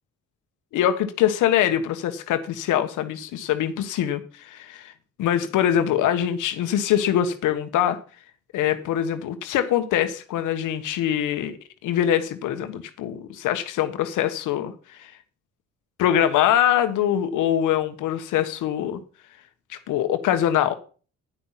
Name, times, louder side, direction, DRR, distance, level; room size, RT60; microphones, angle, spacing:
voice 1, 0.7-4.9 5.2-8.0 8.5-11.6 11.8-15.1 16.0-19.0 19.7-20.7, left 10 dB, 90° left, 1.3 m, -23 dB
10.5 x 5.7 x 7.5 m
cardioid pair, 90°, 30 cm